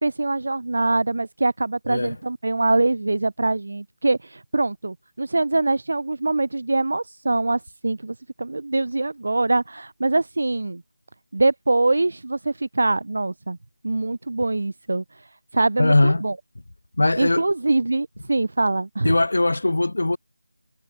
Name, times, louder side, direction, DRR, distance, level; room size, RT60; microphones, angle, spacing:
voice 1, 0.0-10.8 11.3-13.6 13.8-16.4 17.2-19.1, right 2 dB, 60° right, 2.1 m, -23 dB
voice 2, 15.8-16.2 17.0-17.4 19.0-20.2, left 2 dB, 70° left, 2.7 m, -20 dB
figure-of-eight pair, 165°, 0 cm